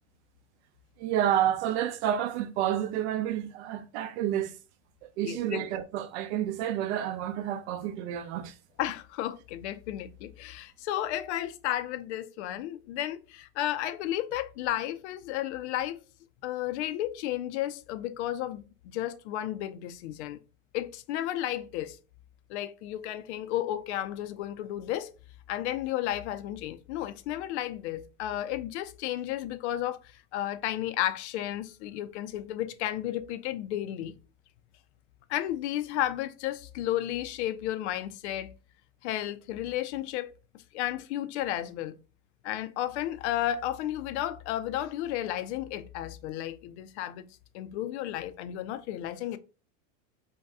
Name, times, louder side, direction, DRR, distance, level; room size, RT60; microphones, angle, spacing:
voice 1, 1.0-4.5 5.2-8.5, right 11 dB, 60° right, 0.6 m, -29 dB
voice 2, 5.2-5.8 8.8-16.0 16.4-20.4 20.7-22.0 22.5-25.1 25.5-34.1 35.3-38.5 39.0-40.3 40.7-42.0 42.4-49.4, left 13 dB, 60° left, 0.5 m, -33 dB
2.7 x 2.2 x 3.4 m
hypercardioid pair, 110°, 38 cm